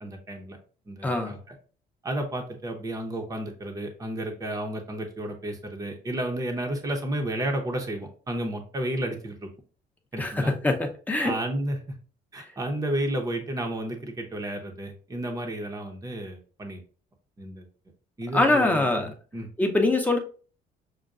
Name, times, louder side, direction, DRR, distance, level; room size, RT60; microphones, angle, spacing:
voice 1, 0.0-0.6 0.9-1.4 2.0-9.5 10.1-10.5 11.2-11.8 12.3-16.8 17.4-17.7 18.2-19.5, right 1 dB, 20° right, 2 dB, 0.8 m, -32 dB
voice 2, 1.0-1.3 10.2-10.8 11.1-11.3 18.3-19.1 19.6-20.2, left 2 dB, 10° left, 3 dB, 0.8 m, -23 dB
6.4 x 2.2 x 2.4 m, 0.39 s
cardioid pair, 110°, 17 cm